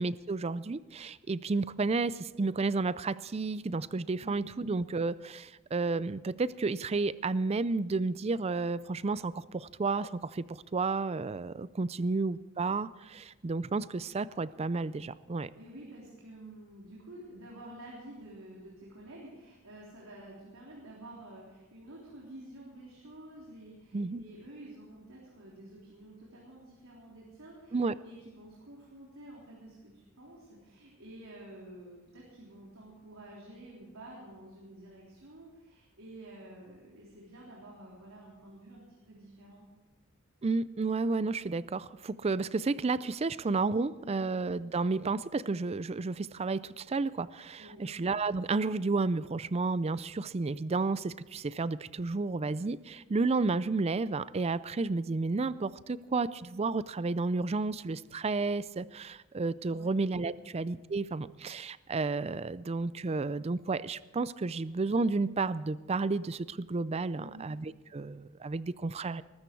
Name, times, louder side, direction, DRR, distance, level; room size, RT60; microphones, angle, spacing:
voice 1, 0.0-15.5 23.9-24.2 27.7-28.0 40.4-69.2, right 3 dB, 30° right, 17 dB, 0.4 m, -32 dB
voice 2, 4.2-4.6 12.0-12.1 15.5-39.6 44.0-44.3 47.6-47.9 59.7-59.9 60.3-60.5 67.2-67.5, right 1 dB, 80° right, -4 dB, 3.7 m, -50 dB
20.5 x 13.0 x 4.6 m, 1.2 s
head